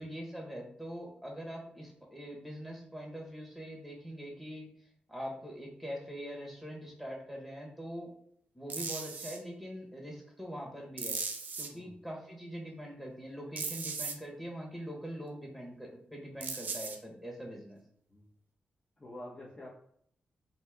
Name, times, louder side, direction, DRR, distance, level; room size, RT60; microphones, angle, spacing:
voice 1, 0.0-4.7 5.1-8.1 8.5-11.2 11.6-17.8, equal, ahead, -2 dB, 1.3 m, -43 dB
sound 1, 8.7-9.4 11.0-11.7 13.6-14.1 16.4-17.0, right 4 dB, 65° right, 0.7 m, -37 dB
voice 2, 19.0-19.7, left 1 dB, 30° left, -8 dB, 1.2 m, -47 dB
4.1 x 2.9 x 3.6 m, 0.67 s
cardioid pair, 95°, 3 cm